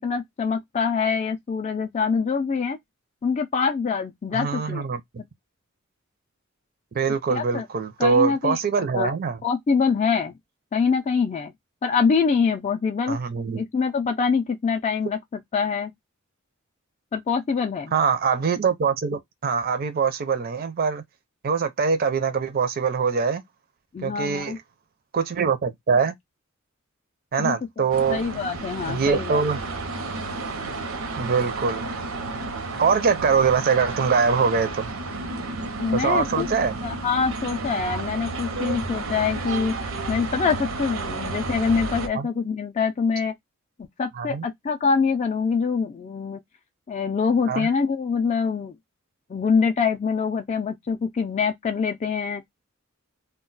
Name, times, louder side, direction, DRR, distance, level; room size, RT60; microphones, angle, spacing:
voice 1, 0.0-2.8 3.2-4.8 7.3-7.7 8.0-9.1 9.4-10.4 10.7-11.5 11.8-13.2 13.6-15.9 17.1-17.9 23.9-24.6 27.4-29.4 35.8-36.5 36.8-39.7 40.1-43.3 43.8-46.4 46.9-48.8 49.3-52.4, left 5 dB, 35° left, 0.3 m, -25 dB
voice 2, 4.3-5.0 6.9-9.4 13.1-13.6 17.9-21.0 21.4-23.4 24.0-24.6 25.1-26.1 27.3-28.3 28.9-29.6 31.2-31.9 32.8-34.9 35.9-36.8 38.6-38.8 42.1-42.3 44.2-44.4 47.5-47.7, right 5 dB, 45° right, 0.4 m, -23 dB
sound 1, 27.9-42.1, right 3 dB, 85° right, 0.7 m, -32 dB
2.3 x 2.2 x 3.8 m
head